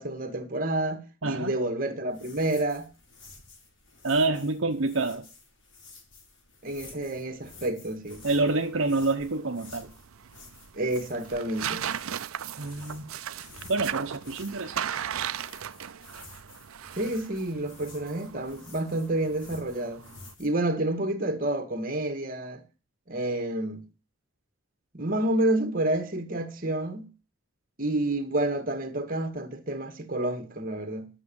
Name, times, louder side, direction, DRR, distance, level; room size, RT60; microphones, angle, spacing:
voice 1, 0.0-2.9 6.6-8.2 10.7-11.8 17.0-20.0 20.4-22.6 23.1-23.8 24.9-27.1 27.8-31.1, right 1 dB, 40° right, 1.8 m, -29 dB
voice 2, 1.2-1.5 4.0-5.3 8.2-9.9 12.6-13.1 13.6-14.9, right 3 dB, 65° right, 1.0 m, -27 dB
sound 1, 2.1-20.5, left 3 dB, 60° left, 4.5 m, -51 dB
sound 2, 8.1-20.3, right 9 dB, 85° right, 0.6 m, -37 dB
11.0 x 7.3 x 7.0 m
head